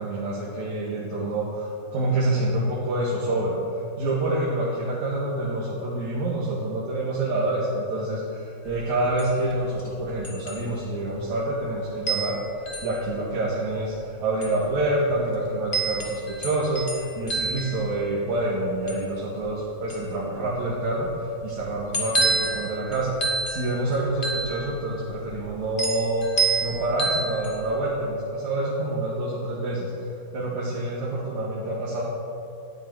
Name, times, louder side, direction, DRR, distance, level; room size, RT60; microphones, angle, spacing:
voice 1, 0.0-3.6 4.0-12.4 12.8-32.0, right 2 dB, 50° right, -6 dB, 3.0 m, -27 dB
sound 1, 8.6-27.8, right 3 dB, 85° left, 0.4 m, -31 dB
19.0 x 14.0 x 4.9 m, 2.7 s
omnidirectional pair, 4.6 m